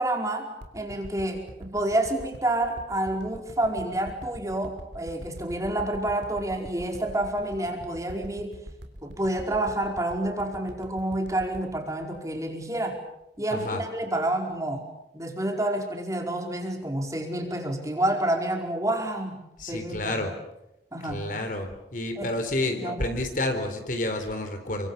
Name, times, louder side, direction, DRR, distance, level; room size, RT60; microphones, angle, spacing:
voice 1, 0.0-8.6 9.0-13.0 13.4-14.9 15.1-20.2 20.9-21.2 22.2-22.3 22.8-23.0, right 1 dB, 20° right, 3 dB, 4.9 m, -29 dB
sound 1, 0.6-12.9 13.3-13.4, equal, 90° right, 3.5 m, -43 dB
voice 2, 13.5-13.8 19.6-20.3 21.0-24.9, left 1 dB, 50° left, 5 dB, 3.9 m, -30 dB
30.0 x 24.5 x 7.2 m, 0.87 s
head